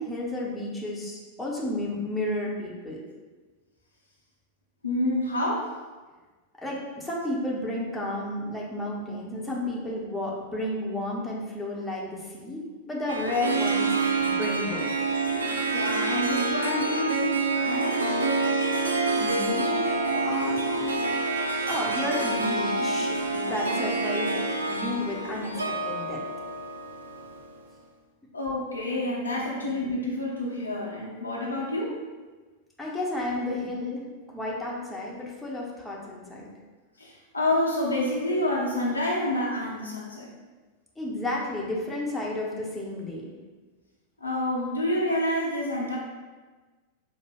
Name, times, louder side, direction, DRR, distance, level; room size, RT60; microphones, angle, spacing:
voice 1, 0.0-3.0 6.6-14.9 19.2-21.1 21.7-24.4 24.7-26.2 32.8-36.5 41.0-43.3, left 1 dB, 5° left, -4 dB, 0.7 m, -32 dB
voice 2, 4.8-5.7 15.7-18.0 28.3-32.0 37.0-40.3 44.2-46.0, left 1 dB, 80° left, -4 dB, 0.7 m, -28 dB
Harp, 13.1-27.6, right 3 dB, 75° right, 0.3 m, -27 dB
4.4 x 2.1 x 3.4 m, 1.3 s
figure-of-eight pair, 90°, 0 cm